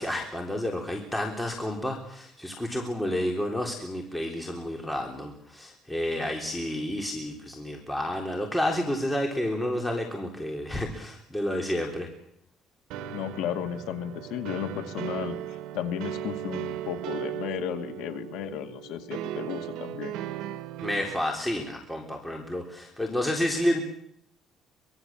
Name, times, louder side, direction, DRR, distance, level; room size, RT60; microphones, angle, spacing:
voice 1, 0.0-12.1 20.8-23.8, left 1 dB, 5° left, 1 dB, 3.7 m, -30 dB
sound 1, 12.9-21.2, right 11 dB, 85° right, 1.4 m, -37 dB
voice 2, 13.1-20.1, left 10 dB, 85° left, 7 dB, 2.2 m, -34 dB
24.0 x 22.0 x 7.5 m, 0.71 s
cardioid pair, 125°, 0 cm